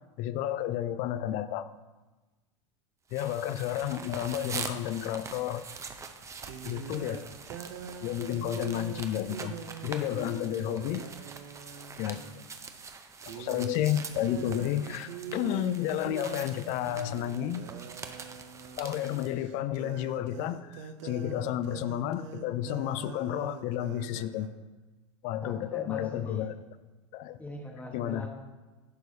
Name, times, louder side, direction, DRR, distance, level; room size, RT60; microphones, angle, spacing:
voice 1, 0.2-1.7 3.1-5.7 6.6-7.2 8.0-9.6 9.8-11.1 12.0-12.2 13.3-17.7 18.8-24.5 25.2-26.5 27.1-27.4 27.9-28.3, left 11 dB, 50° left, 14 dB, 0.4 m, -31 dB
sound 1, 3.1-19.3, right 5 dB, 20° right, 0.6 m, -44 dB
sound 2, 5.5-5.6 6.4-12.4 12.8-13.0 13.2-24.5, right 7 dB, 70° right, 0.7 m, -44 dB
voice 2, 25.4-26.5 27.4-28.3, equal, 10° left, 0 dB, 1.2 m, -42 dB
11.0 x 4.6 x 2.7 m, 1.2 s
hypercardioid pair, 95°, 16 cm